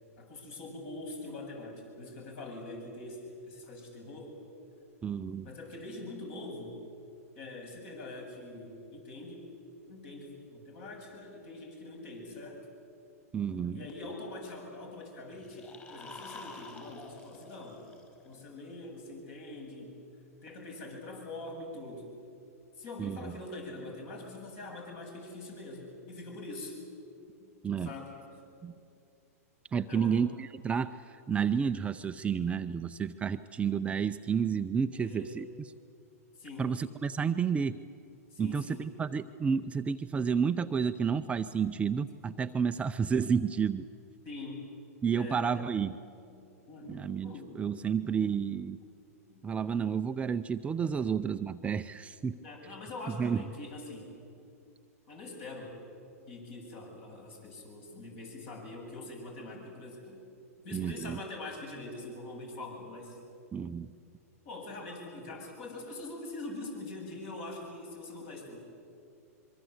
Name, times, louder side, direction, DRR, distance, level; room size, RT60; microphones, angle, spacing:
voice 1, 0.2-4.3 5.4-6.8 7.4-9.5 9.9-12.6 13.7-17.8 18.2-20.0 20.4-22.1 22.8-26.8 27.8-28.1 29.9-30.2 34.9-35.3 36.4-36.7 38.3-38.9 44.2-44.7 45.1-45.5 46.3-48.0 48.3-48.4 49.3-49.4 52.4-54.1 55.1-55.7 56.3-60.2 60.6-63.2 64.4-68.6, left 2 dB, 50° left, 1 dB, 7.7 m, -44 dB
voice 2, 5.0-5.5 13.3-13.8 23.0-23.3 27.6-27.9 28.6-28.7 29.7-35.5 36.6-37.8 38.4-43.9 45.0-46.0 46.9-48.8 49.4-52.4 53.1-53.4 60.7-61.2 63.5-63.9, right 6 dB, 15° right, 9 dB, 0.5 m, -31 dB
sound 1, 15.3-18.4, left 3 dB, 20° left, 4.2 m, -49 dB
24.5 x 23.5 x 8.1 m, 2.5 s
hypercardioid pair, 130°, 8 cm